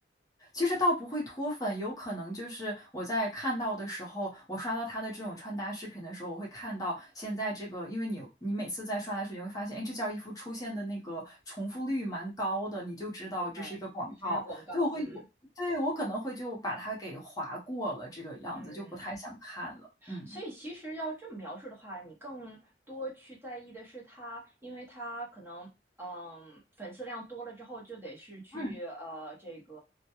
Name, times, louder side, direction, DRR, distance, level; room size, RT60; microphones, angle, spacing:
voice 1, 0.4-14.4 14.7-15.2 15.6-20.4 28.5-28.8, equal, 20° left, -3 dB, 0.7 m, -34 dB
voice 2, 13.3-13.8 14.2-15.1 18.5-19.0 20.0-25.7 26.0-29.8, right 1 dB, 15° right, -4 dB, 0.8 m, -43 dB
2.2 x 2.2 x 2.8 m, 0.26 s
head